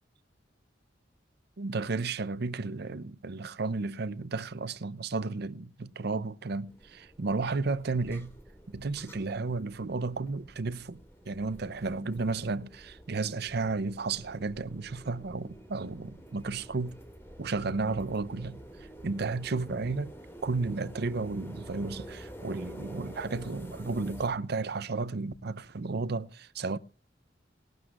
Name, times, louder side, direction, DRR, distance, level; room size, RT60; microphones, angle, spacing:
voice 1, 1.6-8.4 8.7-11.0 11.3-17.0 17.4-18.6 19.0-20.1 20.4-26.8, right 3 dB, 60° right, 0.7 m, -33 dB
sound 1, 6.7-24.3, equal, 15° left, 2.3 m, -49 dB
19.5 x 12.0 x 2.5 m
head